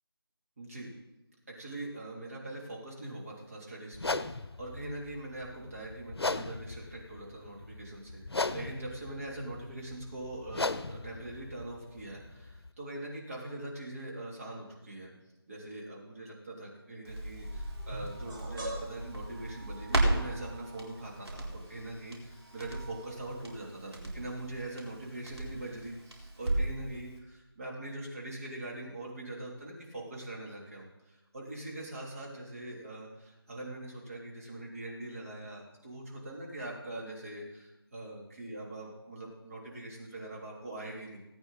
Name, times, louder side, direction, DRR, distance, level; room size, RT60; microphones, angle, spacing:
voice 1, 0.6-0.9 1.5-15.1 15.5-41.2, right 1 dB, 35° right, -3 dB, 3.1 m, -42 dB
sound 1, 3.9-12.7, left 3 dB, 75° left, 0.8 m, -38 dB
Crackle, 17.1-26.9 27.2-27.3, right 2 dB, 85° right, 4.1 m, -36 dB
sound 2, 17.4-23.6, right 1 dB, 50° right, 3.6 m, -45 dB
18.0 x 8.8 x 4.1 m, 0.97 s
figure-of-eight pair, 170°, 13 cm